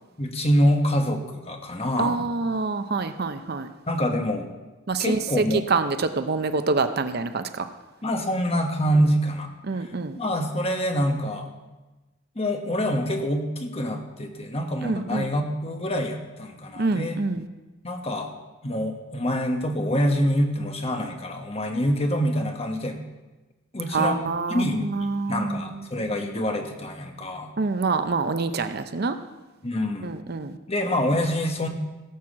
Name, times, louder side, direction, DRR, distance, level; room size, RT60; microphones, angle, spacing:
voice 1, 0.2-2.3 3.9-4.5 5.0-5.6 8.0-9.5 9.8-9.9 10.2-11.5 12.3-17.2 17.8-18.3 18.6-23.0 23.7-24.2 24.5-24.9 25.3-27.5 29.6-30.1 30.7-31.7, equal, 30° left, 4 dB, 1.3 m, -25 dB
voice 2, 2.0-3.7 4.9-7.7 9.6-10.2 14.8-15.2 16.8-17.5 23.9-25.9 27.6-29.2 30.0-30.6, right 4 dB, 50° right, 10 dB, 0.6 m, -26 dB
17.0 x 6.1 x 7.3 m, 1.1 s
head